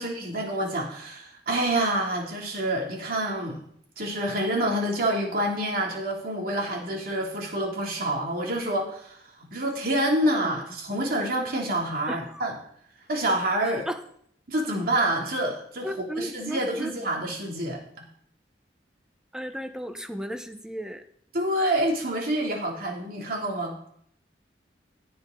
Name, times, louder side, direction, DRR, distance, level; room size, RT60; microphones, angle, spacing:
voice 1, 0.0-3.6 4.0-9.2 9.5-12.5 13.1-13.8 14.5-15.9 16.2-18.0 21.3-23.8, right 1 dB, 55° right, 0 dB, 3.0 m, -27 dB
voice 2, 12.1-12.5 13.8-14.0 15.8-16.9 19.3-21.0, equal, 5° right, 8 dB, 0.9 m, -35 dB
16.5 x 8.8 x 3.9 m, 0.65 s
head